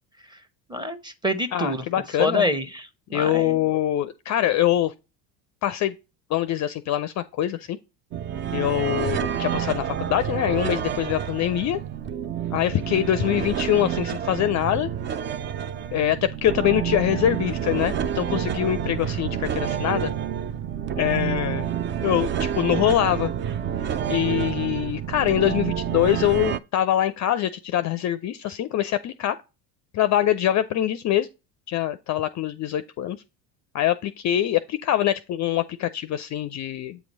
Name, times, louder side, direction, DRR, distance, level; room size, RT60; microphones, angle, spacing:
voice 1, 0.7-1.8 2.2-3.6, left 1 dB, 10° right, 0.9 m, -26 dB
voice 2, 1.5-2.4 3.1-4.9 5.6-5.9 6.3-7.8 8.5-11.8 12.5-14.9 15.9-20.1 21.0-21.7 22.0-23.3 24.1-29.4 29.9-31.3 31.7-33.2 33.7-37.0, left 12 dB, 35° left, 0.5 m, -24 dB
sound 1, 8.1-26.6, right 9 dB, 25° right, 0.4 m, -28 dB
8.2 x 2.9 x 5.3 m
hypercardioid pair, 80°, 49 cm